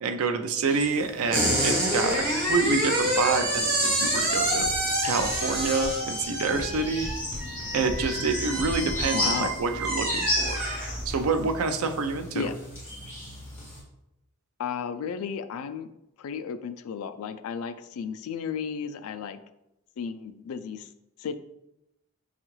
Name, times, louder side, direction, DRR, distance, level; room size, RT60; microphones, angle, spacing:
voice 1, 0.0-2.2 2.5-4.7 5.0-7.1 7.7-10.6 11.1-12.5, right 4 dB, 80° right, 7 dB, 0.4 m, -27 dB
sound 1, 0.6-13.8, left 1 dB, 10° left, 1.4 m, -36 dB
sound 2, 1.3-11.3, right 1 dB, 45° right, 1.0 m, -28 dB
sound 3, 4.3-9.4, equal, 20° right, 1.0 m, -39 dB
voice 2, 9.1-9.5 12.3-12.5 14.6-15.9 16.2-19.4 20.0-20.9 21.2-21.3, left 6 dB, 80° left, 11 dB, 0.3 m, -33 dB
5.3 x 2.4 x 3.0 m, 0.88 s
head